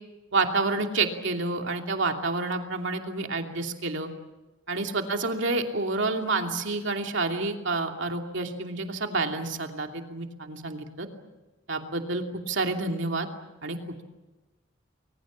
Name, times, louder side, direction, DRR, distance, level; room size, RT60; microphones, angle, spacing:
voice 1, 0.3-4.1 4.7-11.1 11.7-13.3 13.6-13.8, right 3 dB, 70° right, 3 dB, 2.8 m, -29 dB
30.0 x 22.0 x 7.4 m, 1.1 s
head